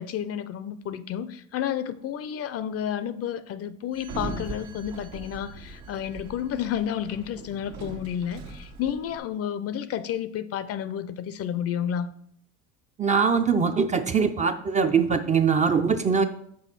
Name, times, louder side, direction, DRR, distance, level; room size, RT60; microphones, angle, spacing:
voice 1, 0.0-12.1, left 9 dB, 45° left, 0.5 m, -31 dB
Sliding door, 3.9-9.2, right 3 dB, 80° right, 1.4 m, -40 dB
voice 2, 13.0-16.2, right 5 dB, 20° right, 0.4 m, -22 dB
6.1 x 4.7 x 5.9 m
cardioid pair, 120°, 33 cm